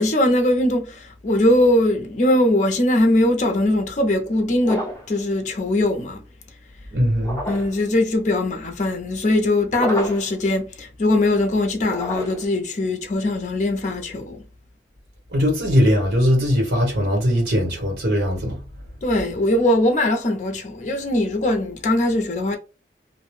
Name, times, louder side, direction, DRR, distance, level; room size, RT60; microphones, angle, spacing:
voice 1, 0.0-6.2 7.5-14.4 19.0-22.6, left 1 dB, 45° left, 0.5 m, -21 dB
sound 1, 4.6-5.2 7.2-7.8 9.7-10.4 11.8-12.6, equal, 20° left, 0.9 m, -30 dB
voice 2, 6.9-7.4 15.3-18.6, equal, 75° right, 1.4 m, -20 dB
2.5 x 2.1 x 3.1 m
head